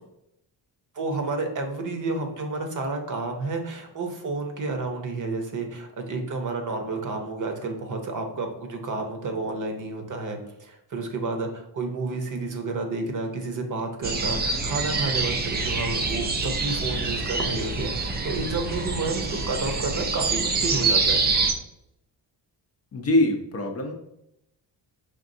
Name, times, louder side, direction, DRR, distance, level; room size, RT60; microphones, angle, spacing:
voice 1, 0.9-21.2, right 3 dB, 45° right, 4 dB, 0.7 m, -30 dB
sound 1, 14.0-21.5, right 4 dB, 25° right, 0.3 m, -26 dB
voice 2, 22.9-23.9, left 1 dB, 35° left, 3 dB, 0.5 m, -23 dB
5.2 x 3.5 x 2.6 m, 0.80 s
wide cardioid pair, 150°, 43 cm